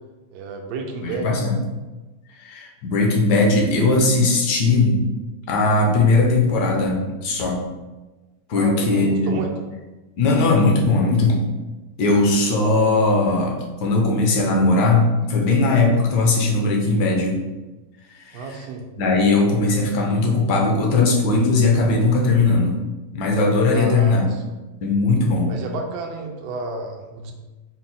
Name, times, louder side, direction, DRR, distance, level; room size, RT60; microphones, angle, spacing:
voice 1, 0.3-1.3 8.5-9.5 18.3-18.8 23.7-24.4 25.5-27.3, right 3 dB, 75° right, 1 dB, 1.0 m, -31 dB
voice 2, 1.0-1.5 2.3-5.0 5.5-7.6 8.5-9.5 10.2-11.4 12.0-17.4 18.1-18.5 19.0-22.8 23.1-24.2 24.8-25.5, left 3 dB, 75° left, 1 dB, 1.3 m, -19 dB
4.4 x 2.0 x 4.0 m, 1.2 s
omnidirectional pair, 1.8 m